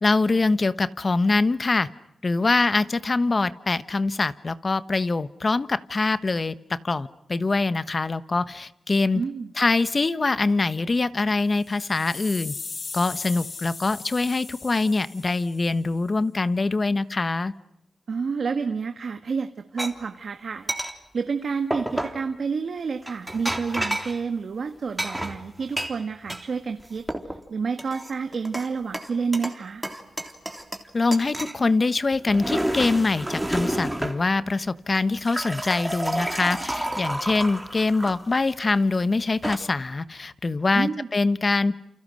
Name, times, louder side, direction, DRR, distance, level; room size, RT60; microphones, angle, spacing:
voice 1, 0.0-1.9 2.2-9.2 9.6-12.6 12.9-17.5 30.9-41.7, left 3 dB, 40° left, 14 dB, 1.2 m, -24 dB
voice 2, 9.1-9.5 18.1-29.8 40.7-41.1, right 5 dB, 65° right, 7 dB, 1.5 m, -29 dB
sound 1, 11.5-15.7, left 4 dB, 60° left, 4.5 m, -38 dB
sound 2, 19.8-19.9 20.7-20.9 21.7-22.2 23.0-24.2 25.0-26.4 26.8-27.4 27.8-28.7 28.9-29.6 29.8-30.9 31.1-31.6 32.1-34.2 34.9-38.4 39.2-39.5, right 1 dB, 10° right, 3.4 m, -30 dB
29.5 x 29.0 x 6.5 m, 0.77 s
cardioid pair, 75°, 0 cm